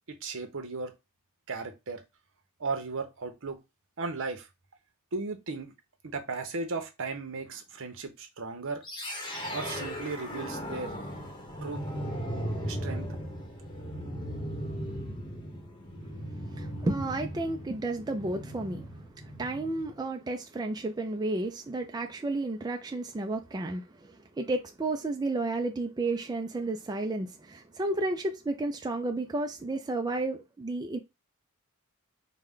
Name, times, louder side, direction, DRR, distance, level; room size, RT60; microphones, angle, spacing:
voice 1, 0.1-0.9 1.5-2.0 2.6-3.6 4.0-4.5 5.1-5.7 6.0-8.8 9.5-10.9 11.6-11.8 12.7-13.1, right 3 dB, 65° right, 0.9 m, -36 dB
sound 1, 8.8-19.9, equal, 20° left, 0.9 m, -37 dB
voice 2, 16.5-31.0, right 2 dB, 20° right, 0.3 m, -32 dB
4.8 x 2.2 x 3.6 m
head